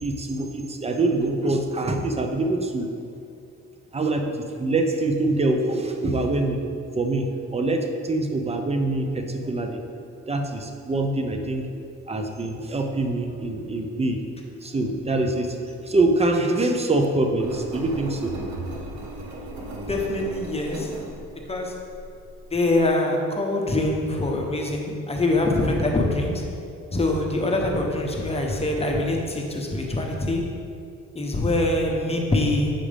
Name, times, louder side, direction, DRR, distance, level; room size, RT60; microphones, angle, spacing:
voice 1, 0.0-2.9 3.9-4.2 4.6-6.6 6.9-9.8 10.3-11.6 12.1-14.2 14.6-15.5 15.9-18.4, right 2 dB, 20° right, 4 dB, 0.7 m, -24 dB
Engine, 17.4-22.9, right 1 dB, 70° right, 1.0 m, -38 dB
voice 2, 19.9-20.9 21.5-21.7 22.5-26.4 26.9-30.4 31.2-32.7, left 2 dB, 20° left, 0 dB, 0.9 m, -24 dB
7.4 x 4.9 x 3.4 m, 2.5 s
cardioid pair, 90°, 30 cm